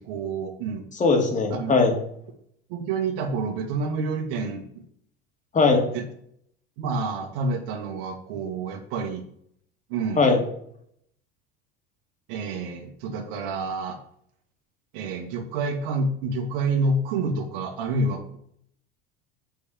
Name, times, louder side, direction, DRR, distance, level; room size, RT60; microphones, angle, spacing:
voice 1, 0.0-0.9 1.5-1.7 2.7-4.6 5.9-6.0 6.8-9.2 9.9-10.3 12.3-14.0 14.9-18.4, right 3 dB, 80° right, 3 dB, 1.9 m, -28 dB
voice 2, 1.0-1.9 5.5-5.8 10.2-10.4, left 4 dB, 25° left, 2 dB, 2.6 m, -19 dB
8.3 x 5.2 x 7.5 m, 0.68 s
supercardioid pair, 110°, 29 cm